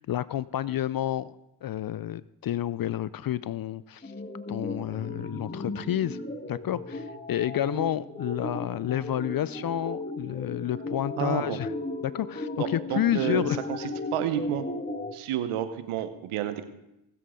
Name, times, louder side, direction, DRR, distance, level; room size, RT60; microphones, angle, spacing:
voice 1, 0.0-1.3 1.6-4.1 4.5-6.2 6.5-11.7 12.0-13.6, left 12 dB, 45° left, 19 dB, 0.5 m, -30 dB
sound 1, 4.0-15.1, left 2 dB, 20° left, 1.7 m, -36 dB
voice 2, 11.2-11.6 12.6-13.4 13.8-14.6 15.1-16.6, right 11 dB, 85° right, 10 dB, 1.0 m, -30 dB
19.5 x 7.6 x 3.8 m, 0.87 s
supercardioid pair, 40°, 49 cm